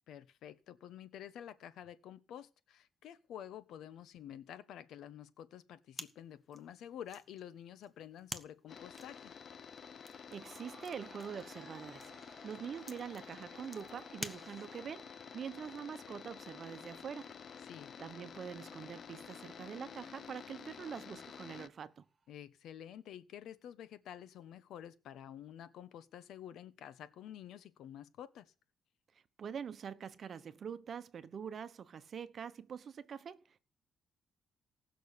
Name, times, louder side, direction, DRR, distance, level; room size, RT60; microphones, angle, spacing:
voice 1, 0.1-9.3 17.6-17.9 22.3-28.5, left 10 dB, 75° left, 1.1 m, -50 dB
sound 1, 5.9-15.0, equal, 10° left, 1.3 m, -51 dB
sound 2, 8.7-21.7, left 7 dB, 50° left, 0.6 m, -51 dB
voice 2, 10.3-17.3 18.0-22.0 29.4-33.6, right 7 dB, 50° right, 1.1 m, -45 dB
sound 3, 10.4-22.4, right 4 dB, 30° right, 1.9 m, -62 dB
18.0 x 6.4 x 6.8 m
cardioid pair, 105°, 0 cm